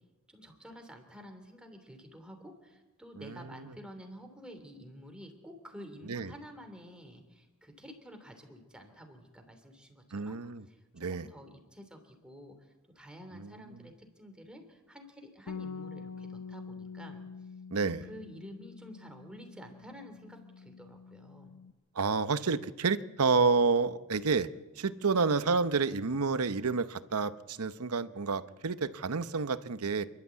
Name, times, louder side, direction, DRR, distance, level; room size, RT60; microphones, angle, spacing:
voice 1, 0.3-10.4 10.7-17.2 18.0-21.5, equal, 5° right, 4 dB, 3.1 m, -50 dB
voice 2, 3.2-3.7 6.1-6.3 10.1-10.6 10.9-11.3 13.3-13.5 17.7-18.1 21.9-24.5 24.8-30.0, right 4 dB, 80° right, 13 dB, 0.9 m, -29 dB
Bass guitar, 15.5-21.7, left 5 dB, 80° left, 0.7 m, -46 dB
28.0 x 12.0 x 8.4 m, 1.2 s
head